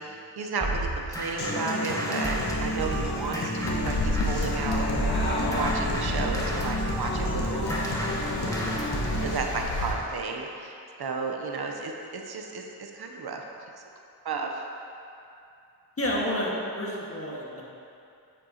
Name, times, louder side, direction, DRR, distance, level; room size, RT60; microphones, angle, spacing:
voice 1, 0.0-4.8 5.5-7.7 9.2-13.4 14.2-14.6, right 4 dB, 60° right, 2 dB, 0.8 m, -33 dB
sound 1, 0.6-4.6 5.0-9.3, right 1 dB, 10° left, 1.3 m, -32 dB
Human voice / Acoustic guitar, 1.4-9.4, left 1 dB, 65° left, 1.5 m, -31 dB
sound 2, 3.6-9.9, left 2 dB, 90° left, 1.1 m, -32 dB
voice 2, 16.0-17.6, equal, 30° left, -4 dB, 1.7 m, -29 dB
9.0 x 7.7 x 2.9 m, 2.6 s
cardioid pair, 70°, 42 cm